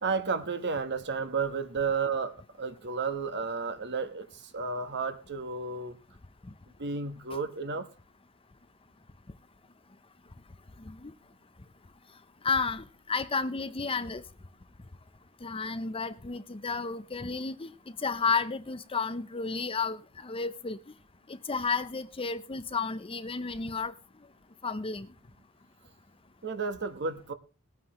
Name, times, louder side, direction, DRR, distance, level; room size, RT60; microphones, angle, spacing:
voice 1, 0.0-6.0 6.8-7.9 26.4-27.3, right 5 dB, 50° right, 1.3 m, -32 dB
voice 2, 12.4-14.2 15.4-17.7 18.0-20.8 21.3-23.9 24.6-25.1, left 4 dB, 25° left, 0.7 m, -32 dB
20.0 x 9.5 x 3.1 m
head